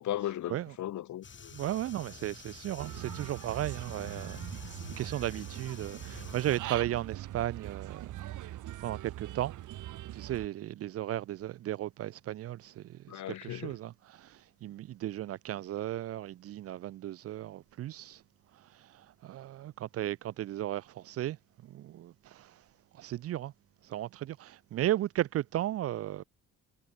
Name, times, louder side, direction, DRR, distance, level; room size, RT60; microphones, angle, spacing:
voice 1, 0.0-1.6 13.1-13.7, left 12 dB, 70° left, 1.7 m, -37 dB
sound 1, 1.2-6.6, left 6 dB, 40° left, 2.6 m, -48 dB
voice 2, 1.5-4.4 5.0-8.4 8.8-9.5 10.1-18.2 18.5-21.4 21.6-22.6 22.9-23.5 23.8-26.2, right 13 dB, 50° right, 0.4 m, -35 dB
Human voice / Bird, 2.8-10.4, right 14 dB, 80° right, 1.7 m, -42 dB
cardioid pair, 90°, 30 cm